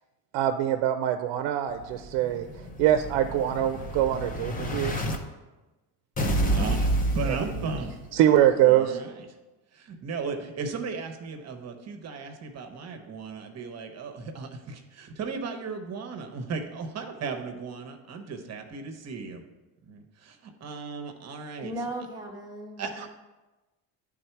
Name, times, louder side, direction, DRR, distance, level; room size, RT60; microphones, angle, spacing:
voice 1, 0.3-5.0 7.3-7.7 8.1-9.0, right 11 dB, 75° right, 8 dB, 0.6 m, -24 dB
Explosion, 1.8-5.2 6.2-8.2, right 1 dB, 20° left, 0.6 m, -29 dB
voice 2, 6.5-7.9 8.6-9.2 9.7-19.4 19.9-21.7 22.8-23.1, right 4 dB, 35° right, 5 dB, 0.9 m, -36 dB
voice 3, 21.6-23.1, right 1 dB, 10° right, 1 dB, 1.0 m, -37 dB
11.0 x 3.7 x 4.5 m, 1.1 s
cardioid pair, 140°, 43 cm